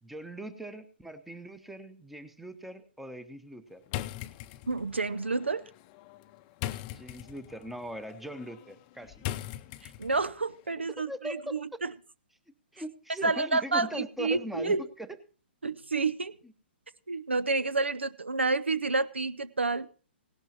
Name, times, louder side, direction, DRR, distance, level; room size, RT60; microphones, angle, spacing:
voice 1, 0.0-3.8 6.9-9.2 11.1-11.6 12.7-15.2, equal, 5° right, 1.0 m, -40 dB
sound 1, 3.9-10.4, left 14 dB, 35° left, 0.6 m, -41 dB
voice 2, 4.7-5.6 9.8-11.9 13.2-14.8 15.6-16.3 17.1-19.9, right 3 dB, 90° right, 0.6 m, -29 dB
17.0 x 12.0 x 3.0 m
figure-of-eight pair, 120°, 6 cm